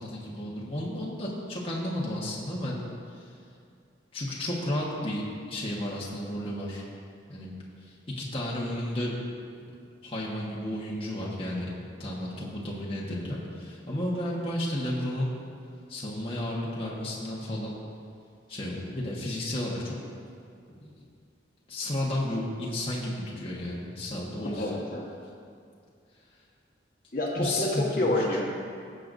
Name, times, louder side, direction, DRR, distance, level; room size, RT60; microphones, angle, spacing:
voice 1, 0.0-2.8 3.1-3.2 4.1-5.2 5.5-6.8 7.3-7.5 7.8-9.1 9.5-9.6 10.0-11.7 12.0-15.3 15.9-17.7 18.5-20.0 20.7-20.9 21.7-24.8 27.3-28.1, left 1 dB, 30° left, -5 dB, 1.3 m, -32 dB
voice 2, 24.4-25.1 27.1-28.4, left 1 dB, 45° left, -2 dB, 1.4 m, -28 dB
18.0 x 7.9 x 2.6 m, 2.3 s
head